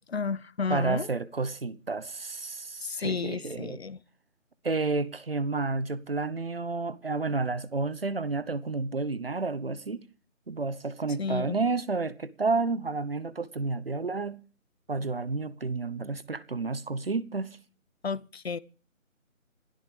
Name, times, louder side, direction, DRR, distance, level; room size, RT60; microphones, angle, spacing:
voice 1, 0.1-1.1 2.8-4.0 11.2-11.6 18.0-18.6, left 5 dB, 50° left, 0.7 m, -32 dB
voice 2, 0.7-3.8 4.6-10.0 10.5-14.4 14.9-17.6, right 3 dB, 45° right, 1.0 m, -30 dB
27.0 x 12.5 x 3.3 m
figure-of-eight pair, 170°, 40 cm